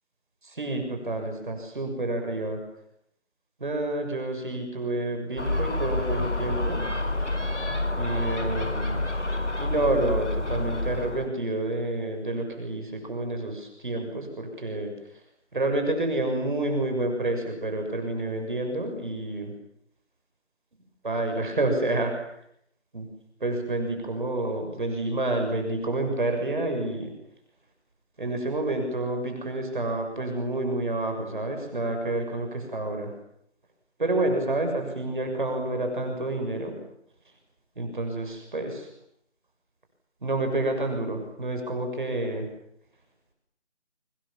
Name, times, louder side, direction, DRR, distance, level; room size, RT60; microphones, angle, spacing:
voice 1, 0.4-2.6 3.6-6.9 7.9-9.0 9.6-14.9 15.5-19.5 21.0-22.3 22.9-23.1 23.4-27.1 28.2-33.1 34.0-36.7 37.8-38.9 40.2-42.5, right 2 dB, 45° right, 4 dB, 7.2 m, -29 dB
Gull seagull, 5.4-11.3, left 2 dB, 85° left, 5.2 m, -28 dB
28.0 x 25.5 x 7.3 m, 0.73 s
figure-of-eight pair, 170°, 35 cm